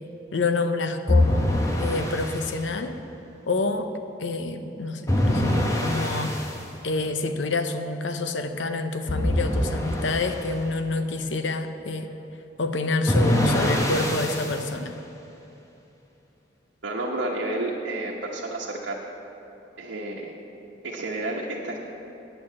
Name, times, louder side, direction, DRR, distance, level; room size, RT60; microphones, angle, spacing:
voice 1, 0.3-1.5 1.8-3.0 3.5-3.9 4.2-5.6 5.8-6.3 6.8-12.1 12.6-14.9, left 3 dB, 90° left, 8 dB, 0.8 m, -27 dB
sound 1, 1.1-2.5 5.1-6.6 9.1-10.4 13.1-14.6, left 1 dB, 20° left, 1.0 m, -24 dB
voice 2, 16.8-19.0 19.8-20.3 20.8-21.8, right 2 dB, 85° right, -4 dB, 1.1 m, -30 dB
9.1 x 8.7 x 7.4 m, 2.8 s
head